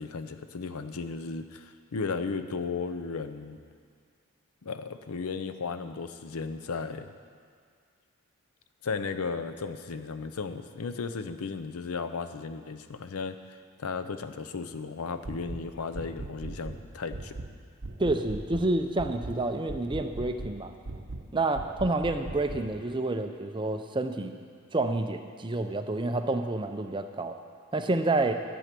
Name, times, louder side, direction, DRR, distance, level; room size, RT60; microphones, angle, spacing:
voice 1, 0.0-3.6 4.6-7.1 8.8-17.4, left 4 dB, 85° left, 10 dB, 0.6 m, -35 dB
sound 1, 15.2-15.6 15.9-16.8 17.1-17.5 17.8-18.7 19.0-19.4 19.7-20.6 20.9-21.3 21.6-22.7, right 2 dB, 55° right, 0.8 m, -38 dB
voice 2, 18.0-20.7 21.3-24.4 24.7-27.4 27.7-28.3, right 2 dB, 20° right, 7 dB, 0.5 m, -29 dB
11.0 x 8.2 x 6.0 m, 2.1 s
head